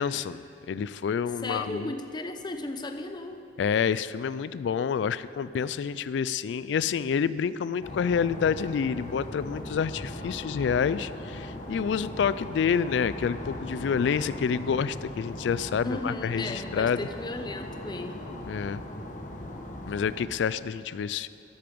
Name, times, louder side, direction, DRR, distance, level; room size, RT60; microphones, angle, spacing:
voice 1, 0.0-1.9 3.6-17.1 18.5-18.8 19.9-21.3, left 7 dB, 85° left, 16 dB, 0.3 m, -28 dB
voice 2, 1.4-3.4 15.8-18.3, left 2 dB, 25° left, 6 dB, 0.7 m, -35 dB
sound 1, 7.8-20.3, left 1 dB, 45° left, 1.2 m, -39 dB
13.5 x 10.5 x 5.2 m, 2.6 s
head